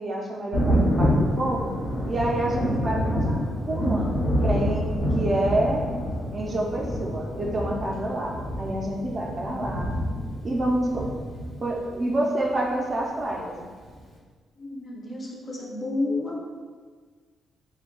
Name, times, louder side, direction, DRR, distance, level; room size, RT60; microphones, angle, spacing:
voice 1, 0.0-1.7 2.1-3.4 3.7-4.9 5.1-5.9 6.3-10.0 10.4-11.1 11.6-13.7, right 1 dB, 30° right, -1 dB, 0.4 m, -28 dB
Thunder, 0.5-11.9 13.2-13.3 13.9-14.0, equal, 85° left, 0.8 m, -27 dB
voice 2, 14.6-16.4, left 2 dB, 30° left, -1 dB, 0.5 m, -31 dB
3.3 x 2.2 x 3.7 m, 1.5 s
cardioid pair, 155°, 0 cm